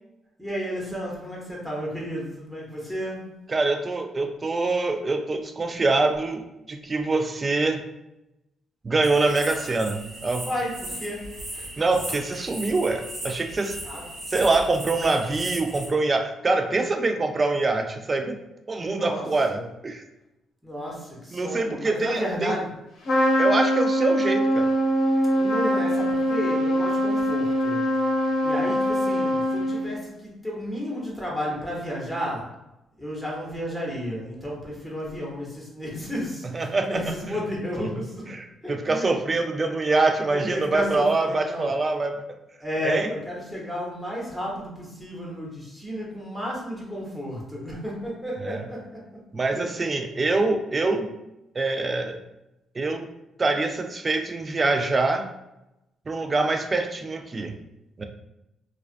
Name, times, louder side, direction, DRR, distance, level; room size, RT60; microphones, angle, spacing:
voice 1, 0.4-3.3 10.4-11.7 13.8-14.1 18.8-19.7 20.6-22.7 25.3-27.9 28.4-32.6 33.0-38.3 38.6-39.1 40.2-41.7 42.6-48.9 49.5-49.7, equal, 5° right, -4 dB, 0.9 m, -32 dB
voice 2, 3.5-7.8 8.8-10.5 11.8-13.8 14.3-18.4 18.7-20.0 21.3-22.6 23.4-24.7 36.5-37.4 37.8-37.9 38.3-42.2 42.8-43.1 48.4-48.6 49.3-51.1 51.6-52.2 52.8-53.1 53.4-55.3 56.1-57.6 58.0-58.1, right 3 dB, 30° right, 6 dB, 0.3 m, -25 dB
sound 1, 9.0-15.9, right 1 dB, 70° right, 1.1 m, -37 dB
Trumpet, 23.0-30.0, equal, 70° left, 0.8 m, -23 dB
2.4 x 2.2 x 2.5 m, 0.91 s
cardioid pair, 90°, 0 cm